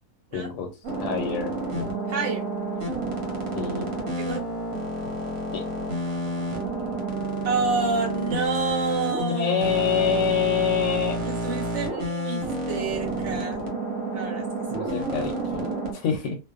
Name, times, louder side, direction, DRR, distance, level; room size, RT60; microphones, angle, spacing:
voice 1, 0.3-0.7 1.0-1.5 3.5-3.9 5.5-5.6 9.3-11.2 14.7-16.4, left 6 dB, 70° left, 3 dB, 0.9 m, -26 dB
sound 1, 0.8-15.9, right 1 dB, 85° right, 1.3 m, -29 dB
voice 2, 2.1-2.4 4.2-4.4 7.4-9.6 11.2-13.6 14.1-14.5, right 4 dB, 60° right, 0 dB, 1.2 m, -28 dB
2.6 x 2.2 x 2.3 m, 0.28 s
omnidirectional pair, 1.4 m